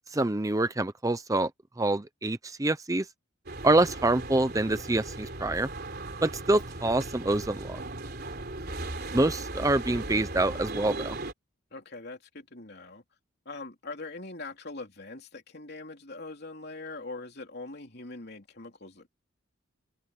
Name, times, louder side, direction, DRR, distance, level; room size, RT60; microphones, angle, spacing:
voice 1, 0.1-1.5 1.8-3.1 3.6-5.7 6.2-7.8 9.1-11.2, right 2 dB, 15° right, 0.7 m, -26 dB
sound 1, 3.5-11.3, right 2 dB, 50° right, 3.7 m, -37 dB
voice 2, 11.7-13.0 13.5-19.1, left 3 dB, 50° left, 3.5 m, -42 dB
head